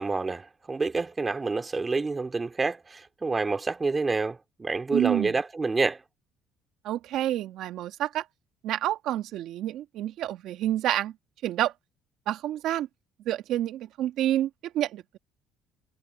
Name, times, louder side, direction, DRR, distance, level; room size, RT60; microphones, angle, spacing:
voice 1, 0.0-6.0, right 3 dB, 20° right, 2.6 m, -28 dB
voice 2, 4.9-5.3 6.8-8.3 8.6-11.1 11.4-11.7 12.3-12.9 13.3-15.2, right 13 dB, 70° right, 2.2 m, -28 dB
cardioid pair, 105°, 0 cm